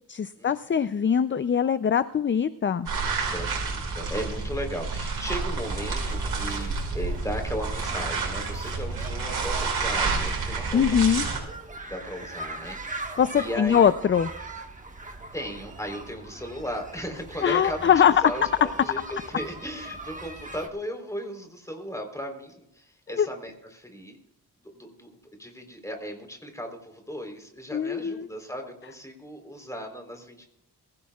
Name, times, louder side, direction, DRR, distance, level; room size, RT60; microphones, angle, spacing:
voice 1, 0.1-2.9 10.7-11.2 13.2-14.3 17.4-18.1 23.2-23.3 27.7-28.3, left 8 dB, 30° left, 13 dB, 0.4 m, -22 dB
sound 1, 2.9-11.4, right 4 dB, 65° right, 5.7 m, -29 dB
voice 2, 3.3-11.3 11.9-13.9 15.3-24.2 24.7-25.1 25.4-30.5, equal, 10° left, 3 dB, 3.7 m, -36 dB
sound 2, 5.5-20.7, right 2 dB, 20° right, 1.4 m, -41 dB
22.5 x 15.5 x 2.4 m, 0.79 s
wide cardioid pair, 115°, 40 cm